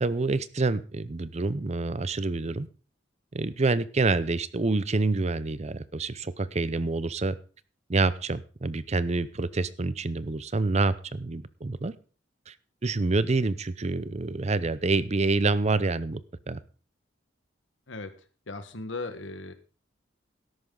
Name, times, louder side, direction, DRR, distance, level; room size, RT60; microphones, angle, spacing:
voice 1, 0.0-2.7 3.3-7.4 7.9-11.9 12.5-12.6 12.8-16.2 16.5-16.6, right 3 dB, 35° right, 16 dB, 0.6 m, -27 dB
voice 2, 18.5-19.5, left 3 dB, 80° left, 10 dB, 1.4 m, -37 dB
13.0 x 11.0 x 3.8 m, 0.37 s
head